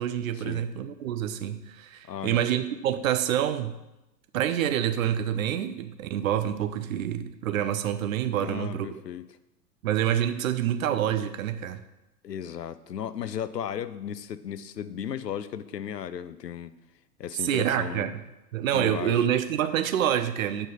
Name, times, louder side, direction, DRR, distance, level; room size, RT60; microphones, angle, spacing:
voice 1, 0.0-3.8 4.3-9.0 9.8-11.9 17.4-18.2 18.5-20.7, right 10 dB, 55° right, 11 dB, 0.8 m, -27 dB
voice 2, 2.1-2.4 8.4-9.2 12.2-16.7 17.2-18.1 18.7-19.2, left 9 dB, 85° left, 14 dB, 0.6 m, -35 dB
8.9 x 4.9 x 5.5 m, 0.96 s
figure-of-eight pair, 100°, 48 cm